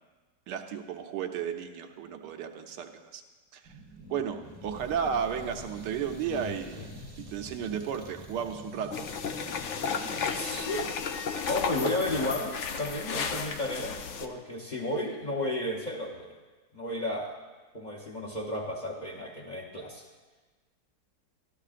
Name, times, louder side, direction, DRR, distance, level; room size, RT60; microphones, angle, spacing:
voice 1, 0.5-3.2 3.5-3.7 4.1-6.9 7.3-9.0, right 7 dB, 75° right, 5 dB, 1.3 m, -33 dB
sound 1, 3.6-11.6, right 1 dB, 25° right, 0.7 m, -47 dB
voice 2, 6.3-7.1 10.1-10.9 11.5-16.3 16.7-17.4 17.7-20.0, left 1 dB, 35° left, -3 dB, 0.8 m, -33 dB
sound 2, 8.9-14.3, left 6 dB, 65° left, 0.7 m, -33 dB
13.0 x 13.0 x 2.5 m, 1.3 s
omnidirectional pair, 1.9 m